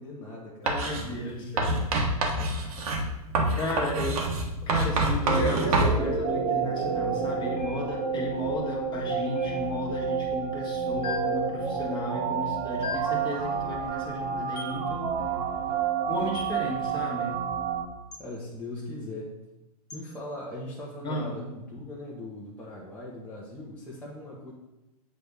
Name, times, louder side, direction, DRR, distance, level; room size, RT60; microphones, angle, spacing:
voice 1, 0.0-1.8 18.2-19.4 19.9-24.5, left 1 dB, 5° left, -7 dB, 1.2 m, -40 dB
voice 2, 0.6-1.7 3.5-4.2 4.7-15.1 16.1-17.3 21.0-21.4, left 1 dB, 25° left, -2 dB, 1.6 m, -34 dB
Writing, 0.7-1.0 1.6-6.0, right 2 dB, 65° right, 1.5 m, -26 dB
sound 1, 5.2-17.9, right 6 dB, 45° right, 1.1 m, -29 dB
sound 2, 7.6-8.2 9.4-10.0 11.0-11.5 12.8-13.2 14.6-14.8 16.3-16.6 18.1-18.3 19.9-20.1, left 5 dB, 90° left, 1.3 m, -39 dB
8.1 x 3.4 x 5.3 m, 0.96 s
hypercardioid pair, 125°, 20 cm